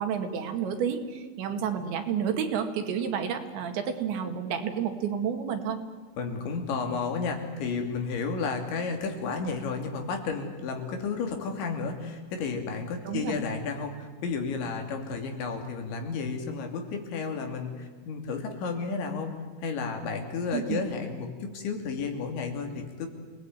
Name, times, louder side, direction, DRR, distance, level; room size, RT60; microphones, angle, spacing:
voice 1, 0.0-5.8 13.0-13.4 20.5-20.8, right 7 dB, 75° right, 6 dB, 4.2 m, -30 dB
voice 2, 6.2-23.1, left 4 dB, 75° left, 4 dB, 5.2 m, -32 dB
28.0 x 19.0 x 9.4 m, 1.5 s
omnidirectional pair, 5.4 m